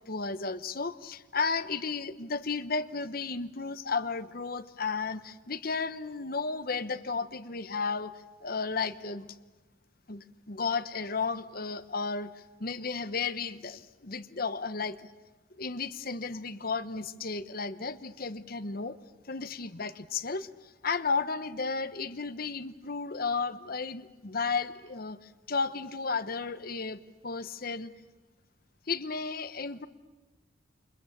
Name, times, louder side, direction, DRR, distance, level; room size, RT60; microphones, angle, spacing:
voice 1, 0.0-8.1 8.4-9.3 10.1-15.1 15.6-19.0 19.3-20.5 20.8-25.2 25.5-27.9 28.9-29.9, left 4 dB, 50° left, 12 dB, 1.0 m, -33 dB
28.5 x 24.0 x 7.3 m, 1.2 s
head